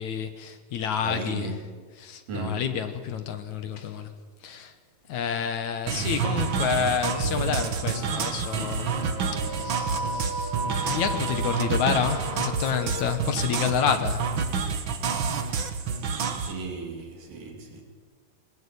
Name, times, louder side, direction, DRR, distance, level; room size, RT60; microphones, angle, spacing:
voice 1, 0.0-1.6 2.0-4.1 4.4-4.7 5.1-9.0 9.5-10.5 10.8-14.3, left 7 dB, 65° left, 2.5 m, -29 dB
voice 2, 1.0-1.6 2.3-2.6 16.4-17.8, right 3 dB, 80° right, 4.9 m, -35 dB
sound 1, 5.1-5.2 6.0-6.1 6.7-13.1, right 1 dB, 15° right, 3.3 m, -36 dB
sound 2, 5.9-16.5, right 5 dB, 50° right, 1.6 m, -28 dB
21.0 x 20.0 x 8.6 m
omnidirectional pair, 3.8 m